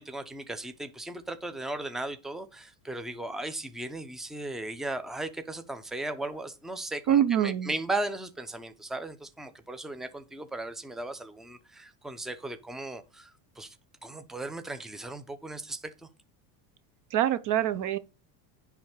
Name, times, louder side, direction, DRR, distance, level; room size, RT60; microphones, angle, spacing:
voice 1, 0.0-13.3 13.6-13.7 14.0-15.8, right 2 dB, ahead, 0.8 m, -36 dB
voice 2, 7.1-7.7 17.1-18.0, right 11 dB, 40° right, 0.7 m, -25 dB
10.0 x 3.6 x 6.5 m
supercardioid pair, 120°, 48 cm